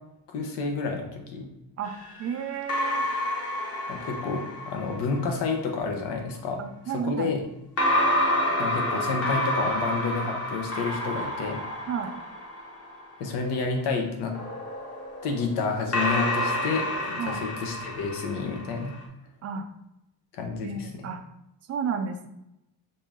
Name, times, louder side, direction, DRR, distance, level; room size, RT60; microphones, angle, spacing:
voice 1, 0.3-1.5 3.9-6.6 6.9-7.4 8.6-11.6 13.2-14.4 15.2-19.0 20.3-20.9, left 4 dB, 90° left, 2 dB, 1.1 m, -30 dB
sound 1, 1.8-5.3 7.8-13.2 14.3-19.0, equal, 40° left, 1.0 m, -29 dB
voice 2, 2.2-3.1 6.6-7.3 11.9-12.1 17.2-17.4 19.4-19.7 20.6-21.2 21.7-22.3, right 6 dB, 40° right, 7 dB, 0.4 m, -32 dB
5.4 x 2.7 x 3.6 m, 0.86 s
cardioid pair, 150°, 40 cm